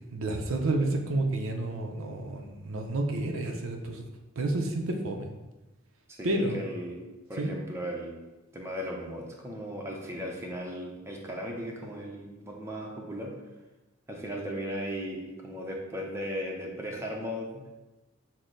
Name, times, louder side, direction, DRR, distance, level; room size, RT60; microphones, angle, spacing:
voice 1, 0.1-4.0 4.4-5.2 6.2-6.6 7.4-7.5, right 2 dB, 70° right, 3 dB, 0.5 m, -30 dB
voice 2, 6.1-8.2 8.5-13.3 14.1-17.6, equal, 15° right, -1 dB, 0.6 m, -37 dB
6.2 x 2.1 x 3.8 m, 1.1 s
head